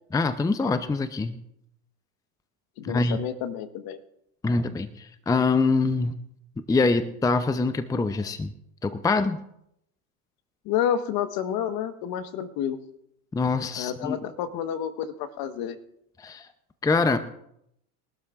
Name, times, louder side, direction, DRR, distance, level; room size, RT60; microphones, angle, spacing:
voice 1, 0.1-1.4 2.8-3.2 4.4-6.2 6.7-8.5 8.8-9.4 13.3-14.2 16.2-16.5 16.8-17.2, left 3 dB, 10° left, 11 dB, 0.6 m, -24 dB
voice 2, 2.8-4.0 10.6-12.8 13.7-15.8, left 9 dB, 55° left, 10 dB, 1.4 m, -29 dB
22.5 x 12.5 x 2.5 m, 0.75 s
hypercardioid pair, 85°, 44 cm